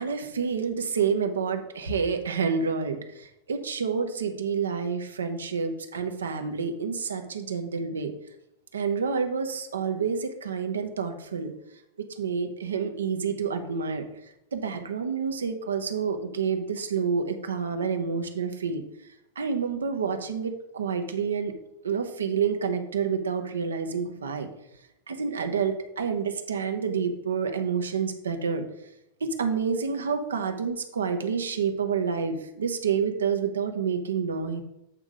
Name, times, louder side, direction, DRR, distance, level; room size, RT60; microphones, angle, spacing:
voice 1, 0.0-8.1 8.7-11.5 12.0-14.1 14.5-18.8 19.4-21.5 21.8-24.5 25.1-28.7 29.2-34.6, right 6 dB, 80° right, 6 dB, 0.8 m, -28 dB
8.3 x 3.6 x 5.0 m, 0.83 s
figure-of-eight pair, 95°, 0 cm